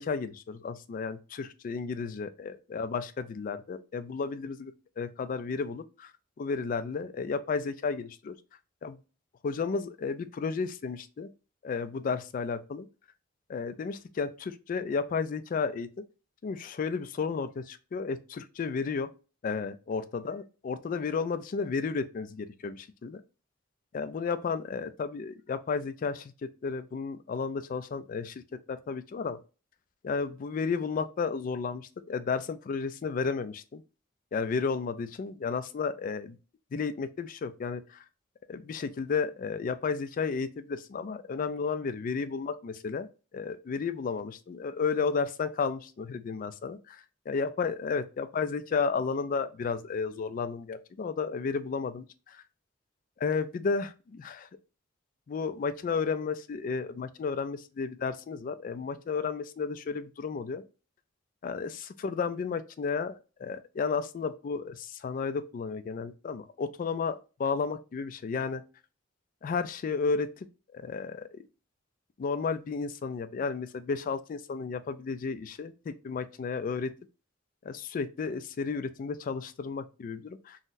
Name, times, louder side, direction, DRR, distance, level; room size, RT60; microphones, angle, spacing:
voice 1, 0.0-6.1 6.4-8.4 8.8-9.0 9.4-11.3 11.6-12.9 13.5-15.9 16.4-19.1 19.4-23.2 23.9-26.3 26.6-28.4 28.7-29.4 30.0-33.8 34.3-36.4 36.7-38.0 38.5-43.1 43.3-47.0 47.3-52.4 53.2-54.5 55.3-60.6 61.4-68.6 69.4-70.5 70.7-71.4 72.2-76.9 77.6-80.6, left 5 dB, 45° left, 0.3 m, -33 dB
3.9 x 2.0 x 2.5 m
head